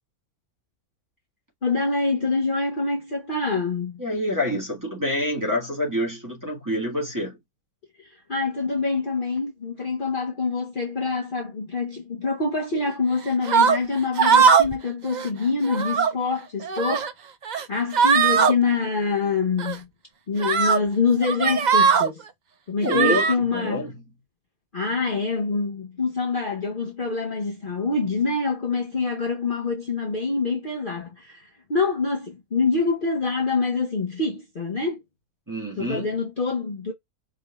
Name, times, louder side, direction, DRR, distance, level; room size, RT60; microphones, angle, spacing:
voice 1, 1.6-4.0 8.0-17.1 17.7-19.9 20.3-22.2 22.7-23.8 24.7-35.0 35.8-36.9, left 4 dB, 40° left, 1.0 m, -25 dB
voice 2, 4.0-7.4 22.8-24.0 35.5-36.1, left 1 dB, 15° right, 1.9 m, -27 dB
sound 1, 13.5-13.8 14.2-14.8 15.1-15.3 15.7-16.1 16.6-17.1 17.5-17.6 17.9-18.5 19.6-19.8 20.4-20.8 21.2-22.1 22.9-23.3, right 6 dB, 70° right, 0.4 m, -19 dB
5.0 x 3.8 x 2.4 m
omnidirectional pair, 1.6 m